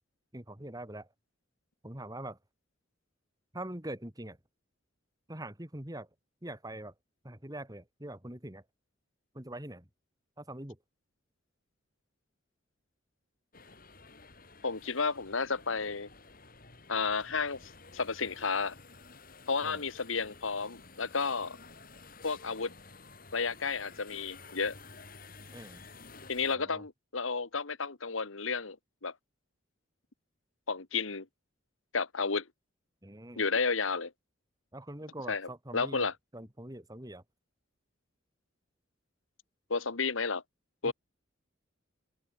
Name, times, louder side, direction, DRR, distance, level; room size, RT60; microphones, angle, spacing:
voice 1, 0.3-1.1 1.8-2.4 3.5-4.4 5.3-6.1 6.4-6.9 7.2-8.6 9.3-9.9 10.4-10.8 19.6-19.8 25.5-25.8 26.5-26.8 33.0-33.4 34.7-37.2 40.8-40.9, right 1 dB, 20° right, 2.5 m, -43 dB
sound 1, 13.5-26.6, left 4 dB, 45° left, 6.5 m, -53 dB
voice 2, 14.6-16.1 16.9-18.7 19.5-21.6 22.2-22.7 23.3-24.8 26.3-28.8 29.0-29.1 30.7-31.3 31.9-32.5 33.4-34.1 35.3-36.1 39.7-40.4 40.8-40.9, left 4 dB, 80° left, 1.6 m, -32 dB
open air
head